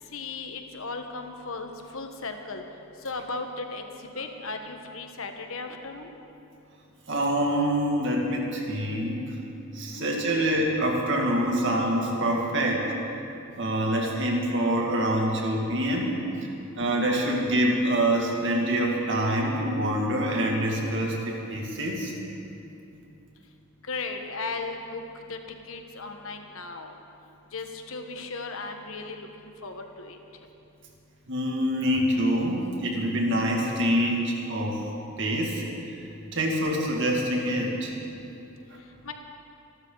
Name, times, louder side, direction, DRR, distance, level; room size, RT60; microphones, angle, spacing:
voice 1, 0.1-2.6 3.0-3.8 4.1-6.1 9.9-10.4 23.9-25.0 25.3-25.4 25.7-26.9 27.5-30.2 39.0-39.1, left 3 dB, 65° left, 5 dB, 1.4 m, -36 dB
voice 2, 7.1-9.3 9.7-12.9 13.6-16.2 16.7-22.1 31.3-34.8 35.2-35.6 36.3-37.9, right 1 dB, 55° right, -1 dB, 2.5 m, -25 dB
26.5 x 13.0 x 4.1 m, 2.8 s
head